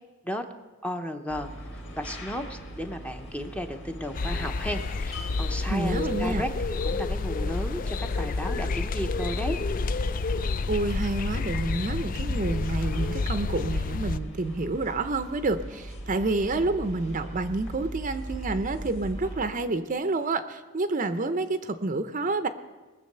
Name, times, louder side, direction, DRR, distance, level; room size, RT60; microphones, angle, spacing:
voice 1, 0.8-6.5 6.8-9.6, equal, 5° left, 6 dB, 0.8 m, -34 dB
sound 1, 1.3-19.4, right 1 dB, 60° left, 3.0 m, -41 dB
sound 2, 4.1-14.2, left 3 dB, 40° left, 0.4 m, -29 dB
voice 2, 5.7-6.4 10.7-22.5, right 3 dB, 35° right, 10 dB, 0.6 m, -29 dB
20.5 x 7.4 x 6.7 m, 1.2 s
head